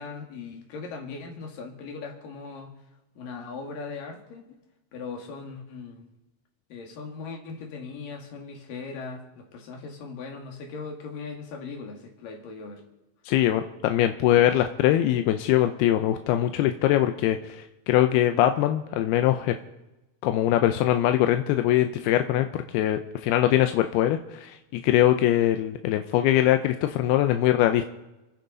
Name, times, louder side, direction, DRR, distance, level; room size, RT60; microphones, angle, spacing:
voice 1, 0.0-2.8 3.2-4.4 4.9-6.1 6.7-12.9, left 4 dB, 65° left, 2 dB, 3.7 m, -39 dB
voice 2, 13.3-19.6 20.2-22.5 22.7-27.9, left 12 dB, 85° left, 7 dB, 2.6 m, -22 dB
29.5 x 10.5 x 4.0 m, 1.0 s
omnidirectional pair, 4.5 m